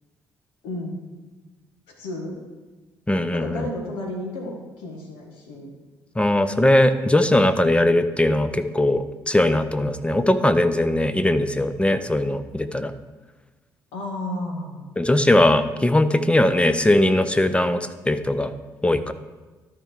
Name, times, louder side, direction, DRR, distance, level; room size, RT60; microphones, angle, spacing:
voice 1, 0.6-1.0 2.0-2.4 3.3-5.7 13.9-14.8, left 1 dB, 75° left, 1 dB, 1.7 m, -32 dB
voice 2, 3.1-3.6 6.2-12.9 15.0-18.5 18.8-19.1, left 1 dB, 10° left, 11 dB, 0.7 m, -20 dB
12.5 x 4.6 x 4.4 m, 1.2 s
hypercardioid pair, 45°, 9 cm